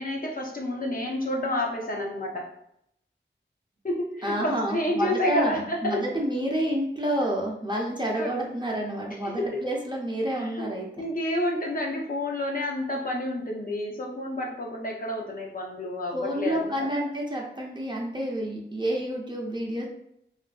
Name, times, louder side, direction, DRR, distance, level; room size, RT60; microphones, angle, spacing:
voice 1, 0.0-2.5 3.8-6.0 8.2-8.3 9.2-9.6 10.4-10.7 11.0-16.9, left 1 dB, 45° left, -1 dB, 0.6 m, -29 dB
voice 2, 4.2-11.0 16.1-19.9, equal, 20° right, -2 dB, 0.6 m, -29 dB
2.6 x 2.5 x 2.3 m, 0.75 s
wide cardioid pair, 60°, 20 cm